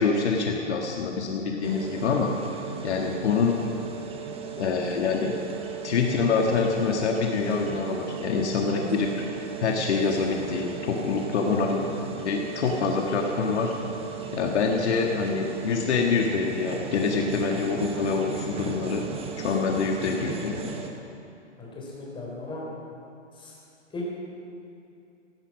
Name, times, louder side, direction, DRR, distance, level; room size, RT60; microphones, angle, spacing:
voice 1, 0.0-2.3 2.8-3.5 4.6-5.3 5.8-9.1 9.6-11.8 12.2-13.7 14.3-19.1 19.4-20.8, left 5 dB, 65° left, 1 dB, 1.8 m, -25 dB
sound 1, 1.6-20.9, right 7 dB, 15° right, 1.1 m, -37 dB
voice 2, 11.5-11.9 21.6-22.6 23.3-23.6 23.9-24.1, left 3 dB, 15° left, -4 dB, 4.2 m, -37 dB
15.5 x 12.0 x 6.2 m, 2.6 s
hypercardioid pair, 125°, 37 cm